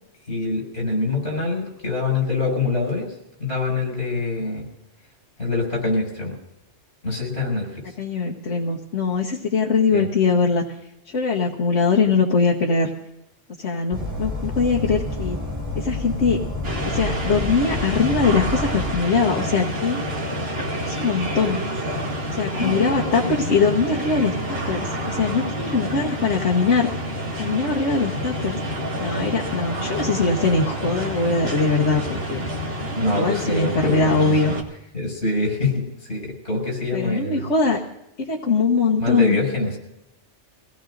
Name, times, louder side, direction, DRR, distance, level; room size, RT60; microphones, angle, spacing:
voice 1, 0.3-3.1 3.4-4.7 5.4-6.4 7.0-7.8 9.9-10.0 22.6-22.9 33.0-34.3 34.9-37.5 39.0-39.8, left 2 dB, 60° left, -1 dB, 6.2 m, -25 dB
voice 2, 8.0-10.6 11.1-12.9 13.6-15.4 15.7-16.4 16.9-20.0 20.9-21.6 22.3-24.3 24.7-26.9 27.4-28.6 29.0-32.4 33.1-34.5 36.9-37.8 38.2-39.4, left 4 dB, 90° left, -4 dB, 1.6 m, -21 dB
sound 1, 13.9-18.9, left 1 dB, 25° right, 2.3 m, -29 dB
sound 2, 16.6-34.6, equal, 55° right, 2.0 m, -28 dB
24.5 x 17.5 x 2.6 m, 0.86 s
omnidirectional pair, 1.2 m